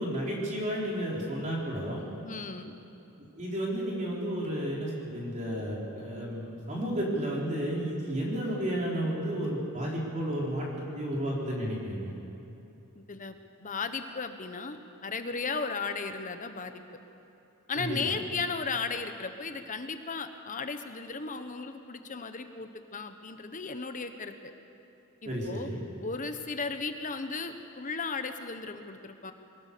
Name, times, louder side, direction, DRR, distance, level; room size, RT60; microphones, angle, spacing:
voice 1, 0.0-2.1 3.4-12.1 17.8-18.2 25.3-25.8, equal, 35° right, -3 dB, 3.9 m, -32 dB
voice 2, 2.2-2.8 12.9-14.8 15.0-16.8 17.7-24.5 25.2-25.7 26.0-29.3, left 4 dB, 40° left, 8 dB, 1.1 m, -35 dB
22.5 x 18.0 x 6.8 m, 2.9 s
head